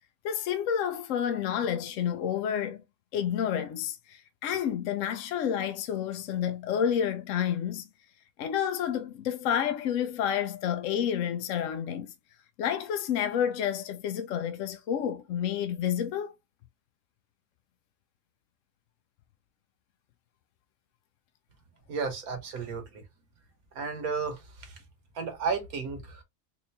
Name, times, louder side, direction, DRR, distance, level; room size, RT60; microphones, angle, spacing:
voice 1, 0.2-2.8 3.1-7.9 8.4-12.1 12.6-16.3, left 9 dB, 70° left, 0.8 m, -29 dB
voice 2, 21.9-23.0 23.7-24.8 25.1-26.2, right 5 dB, 70° right, 1.6 m, -33 dB
4.3 x 2.6 x 2.6 m
omnidirectional pair, 1.6 m